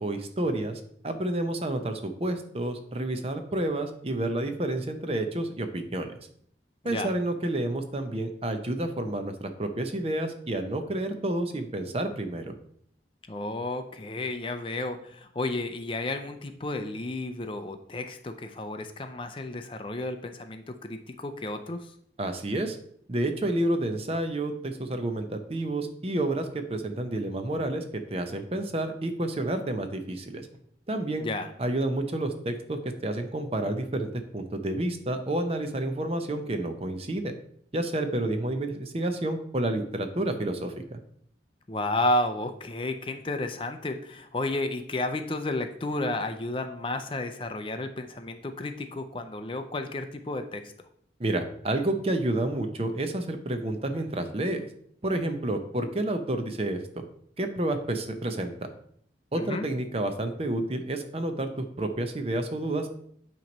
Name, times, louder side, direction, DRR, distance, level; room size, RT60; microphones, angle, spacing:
voice 1, 0.0-6.1 6.8-12.5 22.2-22.8 23.1-30.5 30.9-31.3 31.6-37.3 37.7-41.0 51.2-54.7 55.0-56.8 57.4-58.7 59.3-63.0, right 1 dB, 30° right, 7 dB, 0.6 m, -30 dB
voice 2, 13.3-21.9 31.2-31.5 41.7-50.7 59.3-59.7, left 2 dB, 30° left, 7 dB, 0.5 m, -32 dB
8.8 x 3.0 x 5.2 m, 0.65 s
head